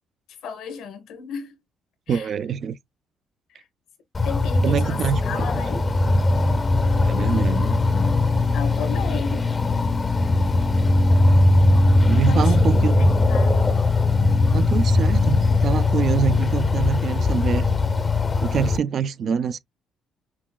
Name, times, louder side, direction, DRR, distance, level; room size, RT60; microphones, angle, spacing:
voice 1, 0.4-1.6 2.1-2.3 3.5-3.6 4.2-5.9 8.5-9.5 9.7-9.8 12.1-12.7 13.0-13.6, left 6 dB, 80° left, 1.1 m, -34 dB
voice 2, 2.1-2.8 4.6-5.6 7.1-7.8 12.1-13.1 14.5-17.7 18.4-19.6, right 7 dB, 55° right, 0.3 m, -25 dB
sound 1, 4.1-18.8, left 2 dB, 30° left, 0.6 m, -19 dB
5.8 x 2.0 x 2.2 m
cardioid pair, 85°, 0 cm